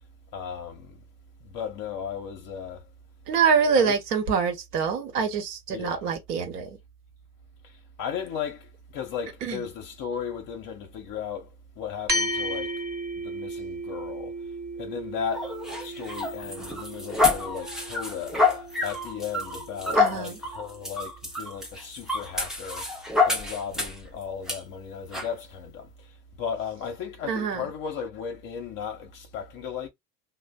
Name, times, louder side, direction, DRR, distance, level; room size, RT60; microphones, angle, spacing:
voice 1, 0.3-1.0 1.4-2.9 3.8-4.0 5.7-6.1 7.6-12.8 13.2-14.3 14.7-15.5 15.8-29.9, left 7 dB, 40° left, 0.7 m, -36 dB
voice 2, 3.3-6.7 9.4-9.6 20.0-20.4 27.3-27.6, right 6 dB, 70° right, 1.0 m, -25 dB
sound 1, 12.1-20.8, right 1 dB, 20° right, 0.9 m, -35 dB
sound 2, 15.3-24.1 24.5-24.6 25.1-25.3, left 3 dB, ahead, 0.3 m, -27 dB
3.2 x 2.1 x 2.2 m
figure-of-eight pair, 65°, 49 cm